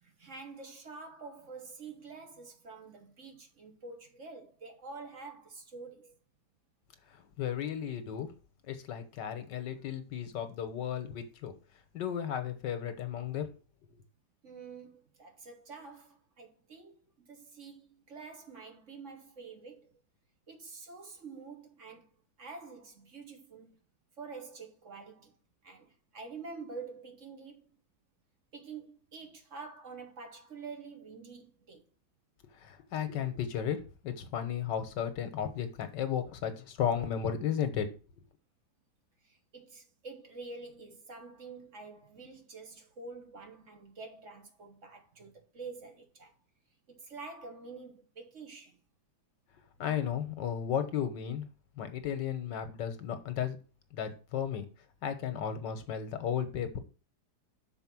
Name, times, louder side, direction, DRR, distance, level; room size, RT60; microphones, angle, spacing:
voice 1, 0.0-6.2 14.4-20.0 20.5-22.1 22.4-23.8 24.2-25.3 25.6-27.7 28.5-31.8 39.2-46.3 46.9-48.8, right 4 dB, 50° right, 1.4 m, -47 dB
voice 2, 7.4-8.3 8.7-11.5 11.9-13.5 32.6-37.9 49.8-51.5 51.8-53.6 53.9-54.6 55.0-56.8, left 8 dB, 85° left, 1.7 m, -34 dB
6.4 x 4.5 x 5.9 m
omnidirectional pair, 1.9 m